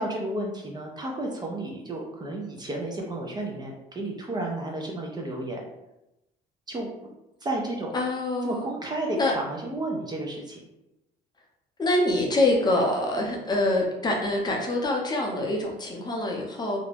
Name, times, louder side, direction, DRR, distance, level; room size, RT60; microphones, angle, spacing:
voice 1, 0.0-5.6 6.7-6.9 7.4-7.9 8.4-10.6, right 1 dB, 25° right, 0 dB, 0.5 m, -32 dB
voice 2, 7.9-8.7 9.2-9.3 11.8-16.8, left 2 dB, 25° left, 0 dB, 0.5 m, -25 dB
2.4 x 2.1 x 3.2 m, 0.93 s
cardioid pair, 110°, 17 cm